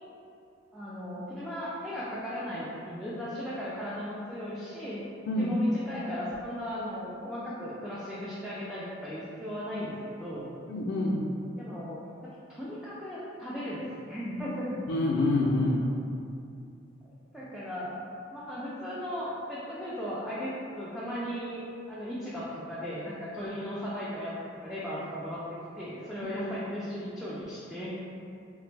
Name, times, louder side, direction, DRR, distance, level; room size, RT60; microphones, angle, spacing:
voice 1, 0.7-5.0 5.4-10.5 11.6-14.7 17.3-18.0 18.3-24.3 24.6-25.4 25.8-27.9, equal, ahead, -9 dB, 0.3 m, -36 dB
voice 2, 10.7-11.2 14.9-15.9, left 2 dB, 80° left, -4 dB, 0.3 m, -26 dB
3.1 x 2.0 x 3.2 m, 2.6 s
head